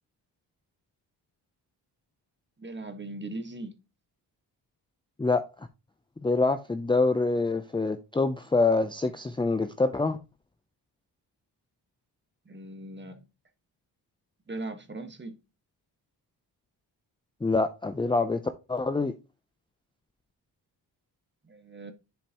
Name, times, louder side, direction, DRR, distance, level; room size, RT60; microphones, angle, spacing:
voice 1, 2.6-3.8 12.4-13.2 14.5-15.4 21.4-21.9, right 2 dB, 25° right, 1.5 m, -39 dB
voice 2, 6.2-10.2 17.4-18.4 18.7-19.1, left 3 dB, 10° left, 0.6 m, -25 dB
10.5 x 5.2 x 3.0 m
cardioid pair, 90°, 44 cm